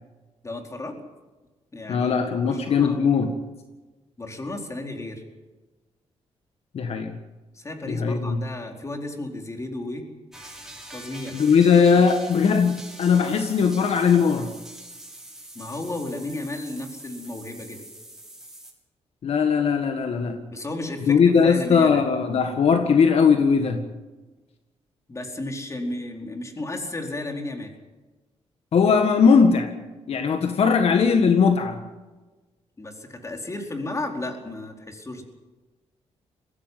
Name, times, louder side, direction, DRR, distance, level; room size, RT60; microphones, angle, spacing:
voice 1, 0.4-0.9 1.7-2.1 2.4-3.0 4.2-5.2 7.5-10.0 10.9-11.4 15.5-17.8 20.5-22.0 25.1-27.7 32.8-35.2, left 2 dB, 25° left, 3 dB, 4.6 m, -33 dB
voice 2, 1.9-3.3 6.7-7.1 7.9-8.4 11.3-14.5 19.2-20.4 21.1-23.8 28.7-29.7 30.1-31.8, left 6 dB, 65° left, 6 dB, 1.8 m, -19 dB
sound 1, 10.3-18.7, right 1 dB, 5° right, 6.7 m, -43 dB
21.0 x 16.0 x 9.5 m, 1.2 s
cardioid pair, 90°, 11 cm